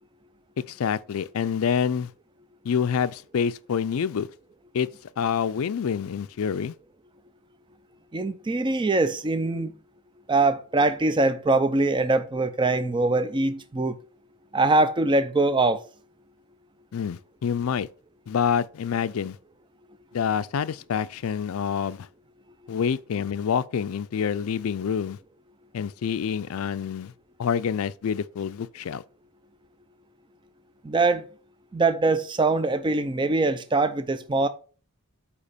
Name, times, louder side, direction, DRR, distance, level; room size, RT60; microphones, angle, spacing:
voice 1, 0.6-2.1 2.6-4.3 4.7-4.9 5.2-6.7 16.9-17.9 18.3-19.4 20.1-22.1 22.7-25.2 25.7-27.1 27.4-29.0, left 7 dB, 65° left, 0.4 m, -27 dB
voice 2, 8.1-9.7 10.3-13.9 14.5-15.8 30.8-31.2 31.7-34.5, right 3 dB, 20° right, 0.4 m, -23 dB
8.2 x 2.9 x 5.1 m
head